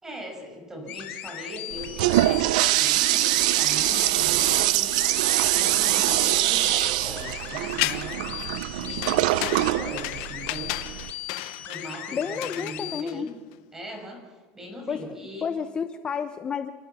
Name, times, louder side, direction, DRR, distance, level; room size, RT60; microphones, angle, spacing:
voice 1, 0.0-4.9 5.4-8.4 8.7-10.7 11.6-13.3 13.7-15.5, equal, 10° right, 3 dB, 6.3 m, -39 dB
sound 1, 0.9-13.0, left 11 dB, 50° left, 2.3 m, -38 dB
Toilet flush, 1.7-11.1, right 17 dB, 80° right, 0.6 m, -23 dB
sound 2, 7.8-8.3 9.0-13.5, left 19 dB, 70° left, 0.9 m, -33 dB
voice 2, 12.1-13.3 14.9-15.2 15.4-16.7, left 6 dB, 25° left, 9 dB, 0.9 m, -31 dB
27.0 x 16.0 x 7.0 m, 1.4 s
supercardioid pair, 140°, 4 cm